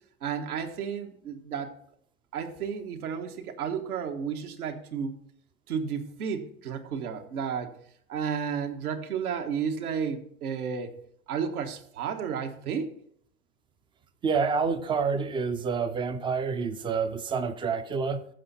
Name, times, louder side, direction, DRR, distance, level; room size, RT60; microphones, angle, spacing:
voice 1, 0.2-1.7 2.3-5.1 5.7-7.7 8.1-10.9 11.3-12.9, right 7 dB, 80° right, 1.7 m, -32 dB
voice 2, 14.2-18.3, right 5 dB, 10° right, 0.4 m, -28 dB
14.5 x 5.7 x 4.2 m
hypercardioid pair, 115°, 44 cm